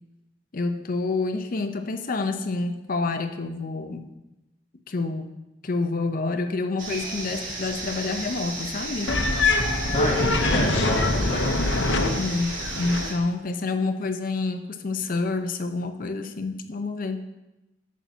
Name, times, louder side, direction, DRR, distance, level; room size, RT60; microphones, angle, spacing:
voice 1, 0.5-4.1 4.9-5.3 5.6-9.1 12.2-17.2, left 3 dB, 50° left, 7 dB, 0.7 m, -28 dB
sound 1, 6.8-13.1, right 2 dB, 50° right, 1.7 m, -34 dB
sound 2, 9.1-13.1, left 2 dB, 80° left, 0.8 m, -24 dB
voice 2, 9.9-11.6, left 1 dB, 35° left, -4 dB, 1.1 m, -28 dB
11.0 x 7.4 x 2.8 m, 0.95 s
head